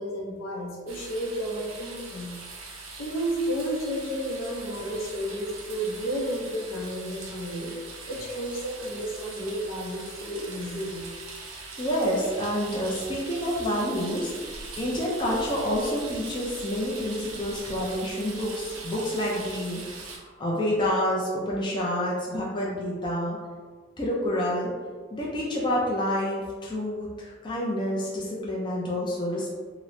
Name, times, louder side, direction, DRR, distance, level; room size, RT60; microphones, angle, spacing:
voice 1, 0.0-2.3 3.0-7.7 8.1-11.1, equal, 75° left, -3 dB, 0.6 m, -32 dB
sound 1, 0.9-20.2, right 3 dB, 90° right, 0.5 m, -41 dB
voice 2, 11.8-23.4 24.0-24.7 25.1-29.5, equal, 25° left, -5 dB, 0.4 m, -28 dB
2.8 x 2.0 x 2.6 m, 1.5 s
head